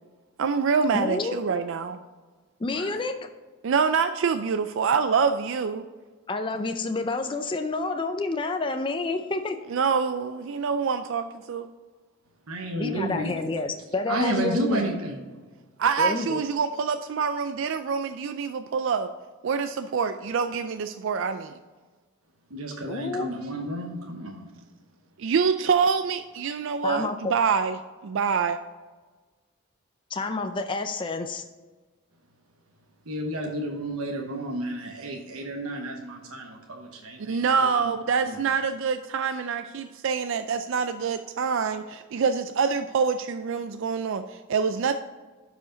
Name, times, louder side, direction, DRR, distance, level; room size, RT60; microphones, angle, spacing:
voice 1, 0.4-2.0 3.6-5.8 9.7-11.7 15.8-19.1 19.4-21.6 25.2-27.8 28.0-28.6 37.3-44.9, right 5 dB, 60° right, 9 dB, 0.4 m, -26 dB
voice 2, 0.9-1.4 2.6-3.1 6.3-9.6 12.8-14.8 16.0-16.4 22.9-23.3 26.8-27.3 30.1-31.4, left 3 dB, 25° left, 6 dB, 0.4 m, -29 dB
voice 3, 2.6-2.9 12.5-13.3 14.1-15.2 22.5-24.5 33.1-37.8 38.2-38.4, right 1 dB, 80° right, 1 dB, 1.1 m, -31 dB
12.0 x 5.0 x 3.9 m, 1.3 s
head